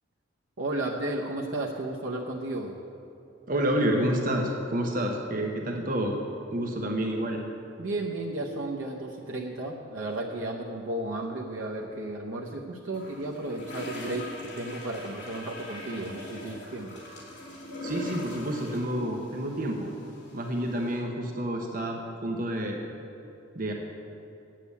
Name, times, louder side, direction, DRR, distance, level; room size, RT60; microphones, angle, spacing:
voice 1, 0.6-2.8 7.8-17.0, right 2 dB, 90° right, -1 dB, 0.9 m, -33 dB
voice 2, 3.5-6.2 6.5-7.4 17.8-19.9 20.3-22.8 23.5-23.7, right 1 dB, 45° right, 1 dB, 0.9 m, -29 dB
sound 1, 12.9-21.0, left 2 dB, 60° left, 3.0 m, -42 dB
8.4 x 7.5 x 8.3 m, 2.8 s
head